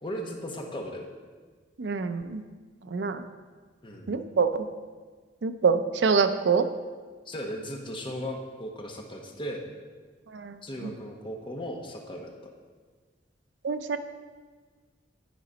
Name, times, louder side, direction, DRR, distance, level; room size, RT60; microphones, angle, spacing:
voice 1, 0.0-1.1 3.8-4.1 7.3-9.6 10.6-12.3, equal, 30° left, 1 dB, 1.0 m, -36 dB
voice 2, 1.8-2.4 2.9-3.2 4.1-4.7 5.4-6.7 10.3-10.9 13.6-14.0, right 5 dB, 75° right, 10 dB, 0.5 m, -26 dB
11.0 x 5.0 x 5.1 m, 1.5 s
head